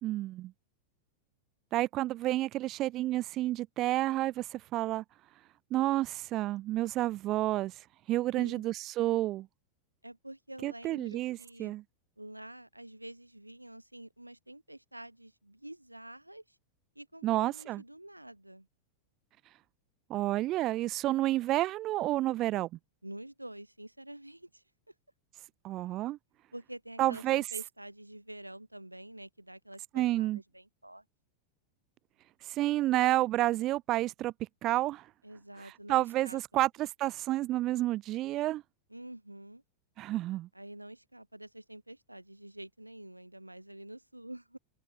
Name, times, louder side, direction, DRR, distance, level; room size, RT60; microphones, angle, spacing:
voice 1, 0.0-0.5 1.7-5.0 5.7-9.5 10.6-11.8 17.2-17.8 20.1-22.7 25.6-26.2 27.0-27.4 29.9-30.4 32.4-34.3 34.6-35.1 35.9-38.6 40.0-40.5, right 15 dB, 35° right, 0.4 m, -30 dB
voice 2, 8.3-8.7 10.0-11.7 12.2-16.6 17.0-18.7 23.0-24.9 26.5-31.0 35.2-36.7 38.9-39.6 40.5-44.6, right 1 dB, 85° right, 0.6 m, -48 dB
open air
figure-of-eight pair, 90°, 0 cm